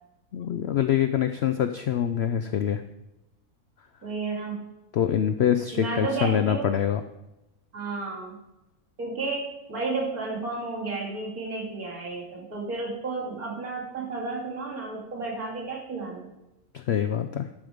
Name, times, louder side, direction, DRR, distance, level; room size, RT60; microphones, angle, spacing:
voice 1, 0.3-2.8 4.9-7.0 16.7-17.5, left 9 dB, 70° left, 9 dB, 0.6 m, -25 dB
voice 2, 4.0-4.7 5.7-6.8 7.7-8.3 9.0-16.3, right 3 dB, 65° right, -4 dB, 3.1 m, -32 dB
11.0 x 6.5 x 5.0 m, 0.94 s
omnidirectional pair, 1.6 m